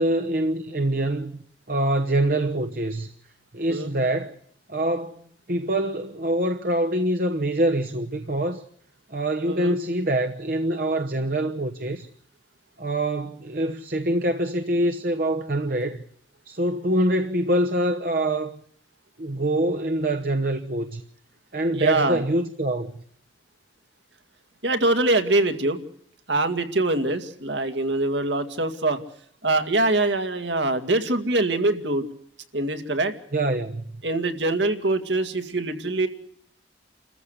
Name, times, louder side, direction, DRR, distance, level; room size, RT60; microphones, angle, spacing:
voice 1, 0.0-3.1 3.5-4.3 4.7-5.2 5.5-8.6 9.1-12.1 12.8-16.0 16.4-18.6 19.2-21.0 21.5-22.9 33.3-34.0, right 1 dB, 50° right, 1.1 m, -25 dB
voice 2, 9.5-9.8 21.7-22.2 24.6-25.8 26.3-29.0 29.4-32.1 32.5-33.1 34.0-36.1, right 2 dB, 70° right, 2.2 m, -23 dB
29.0 x 14.5 x 8.1 m
head